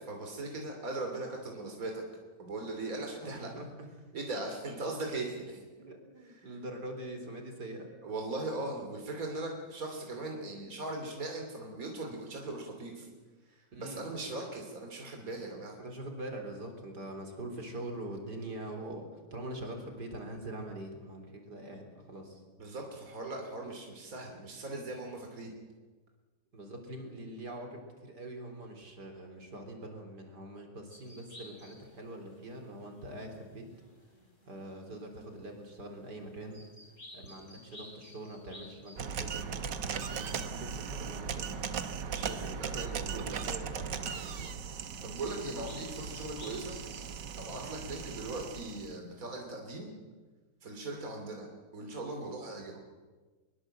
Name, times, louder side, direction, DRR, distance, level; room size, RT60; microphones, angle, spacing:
voice 1, 0.0-2.0 2.4-3.5 4.1-5.6 6.2-6.5 8.0-13.1 13.5-15.8 22.6-25.5 42.1-43.3 45.0-46.8 47.4-49.9 50.6-52.9, right 2 dB, 55° right, 2 dB, 3.5 m, -39 dB
voice 2, 3.2-3.7 5.8-7.9 13.7-14.1 15.8-22.4 26.5-33.6 34.5-36.6 37.1-41.6 42.2-44.5, right 1 dB, 70° right, 4 dB, 4.3 m, -44 dB
sound 1, 30.9-49.4, left 1 dB, 45° left, 5.3 m, -58 dB
sound 2, 39.0-48.9, right 6 dB, 90° right, 1.9 m, -38 dB
23.0 x 22.5 x 7.8 m, 1.3 s
omnidirectional pair, 1.8 m